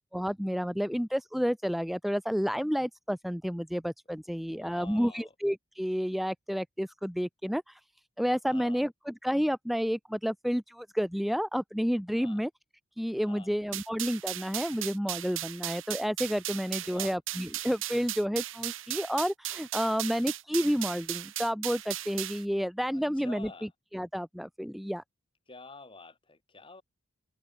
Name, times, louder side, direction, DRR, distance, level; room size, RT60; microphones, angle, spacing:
voice 1, 0.1-7.8 8.2-12.5 13.0-23.5 23.9-25.0, equal, ahead, 0.5 m, -30 dB
voice 2, 4.5-5.3 8.4-8.8 12.2-12.4 13.2-13.5 16.8-17.1 22.9-23.7 25.5-26.8, left 3 dB, 25° left, 1.4 m, -49 dB
sound 1, 13.7-22.4, right 14 dB, 65° right, 1.5 m, -37 dB
head